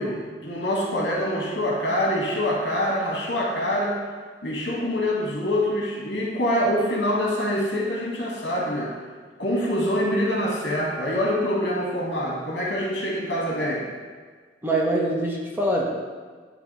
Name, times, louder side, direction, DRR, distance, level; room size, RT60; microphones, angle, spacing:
voice 1, 0.0-4.0 4.4-8.9 9.4-13.8, equal, 70° left, -3 dB, 1.9 m, -25 dB
voice 2, 14.6-15.8, right 1 dB, 10° right, -2 dB, 0.8 m, -23 dB
9.8 x 3.3 x 4.1 m, 1.5 s
head